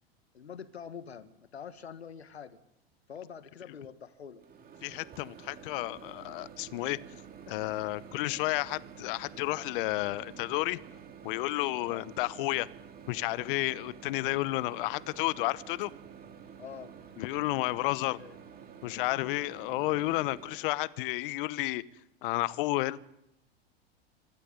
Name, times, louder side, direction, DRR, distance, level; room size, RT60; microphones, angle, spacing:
voice 1, 0.3-2.6 3.1-4.4 11.9-12.1 16.6-16.9 17.8-18.4, left 7 dB, 90° left, 1.3 m, -45 dB
Microwave oven, 4.4-20.7, right 7 dB, 30° right, 2.5 m, -50 dB
voice 2, 4.8-7.0 7.5-10.8 11.2-12.7 13.1-15.9 17.2-18.2 18.8-21.8 22.2-23.0, left 19 dB, 55° left, 1.0 m, -31 dB
25.5 x 11.5 x 9.5 m
hypercardioid pair, 90°, 31 cm